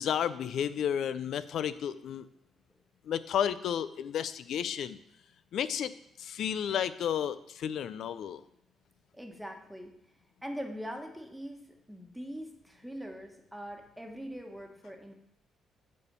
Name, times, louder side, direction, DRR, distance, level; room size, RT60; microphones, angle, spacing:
voice 1, 0.0-2.3 3.1-5.0 5.5-5.9 6.2-8.4, left 9 dB, 70° left, 15 dB, 0.4 m, -32 dB
voice 2, 9.1-9.9 10.4-15.1, equal, ahead, 3 dB, 1.4 m, -42 dB
8.3 x 4.3 x 6.8 m, 0.75 s
cardioid pair, 90°, 0 cm